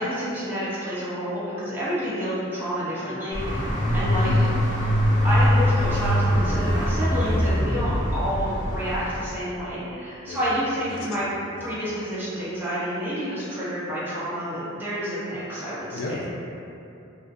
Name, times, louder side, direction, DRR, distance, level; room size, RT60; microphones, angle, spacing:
voice 1, 0.0-4.3 5.2-11.3 11.6-16.2, equal, 10° right, -11 dB, 0.6 m, -29 dB
sound 1, 3.3-9.2, equal, 40° left, 0.6 m, -22 dB
voice 2, 10.9-11.8 15.9-16.3, left 2 dB, 80° left, -2 dB, 0.3 m, -35 dB
2.4 x 2.1 x 2.5 m, 2.7 s
head